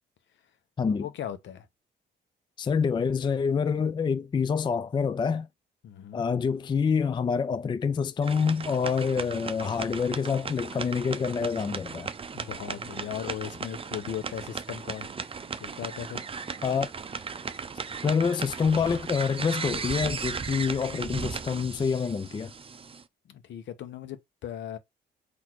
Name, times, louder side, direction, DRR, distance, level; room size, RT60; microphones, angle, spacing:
voice 1, 0.9-1.7 5.8-6.3 12.3-15.1 15.6-16.2 23.3-24.8, left 10 dB, 70° left, 0.9 m, -38 dB
voice 2, 2.6-5.5 6.1-12.1 16.6-16.9 18.0-22.5, left 6 dB, 25° left, 0.4 m, -27 dB
sound 1, 8.2-23.0, right 5 dB, 30° right, 0.6 m, -37 dB
4.1 x 2.7 x 4.6 m
cardioid pair, 90°, 20 cm